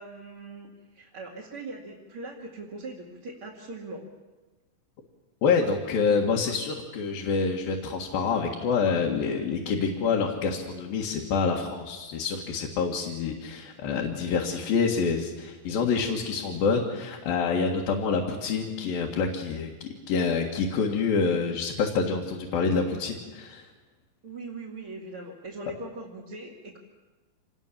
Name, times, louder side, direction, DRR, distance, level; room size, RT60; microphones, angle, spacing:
voice 1, 0.0-4.0 24.2-26.8, right 2 dB, 40° right, -4 dB, 2.8 m, -41 dB
voice 2, 5.4-23.7, left 5 dB, 75° left, -1 dB, 3.6 m, -27 dB
26.5 x 20.0 x 7.4 m, 1.3 s
omnidirectional pair, 4.2 m